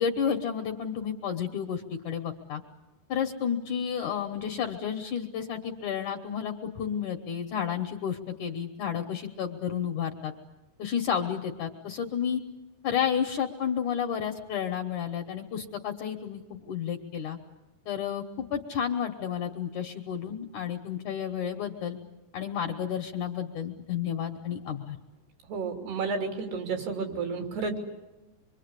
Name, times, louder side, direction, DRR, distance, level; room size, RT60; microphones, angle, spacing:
voice 1, 0.0-2.6 3.1-10.3 10.8-12.4 12.8-17.4 17.9-18.2 18.5-22.0 22.3-25.0, left 8 dB, 65° left, 4 dB, 2.0 m, -31 dB
voice 2, 25.5-27.8, right 4 dB, 75° right, 3 dB, 5.0 m, -31 dB
25.5 x 24.0 x 8.2 m, 1.1 s
omnidirectional pair, 4.8 m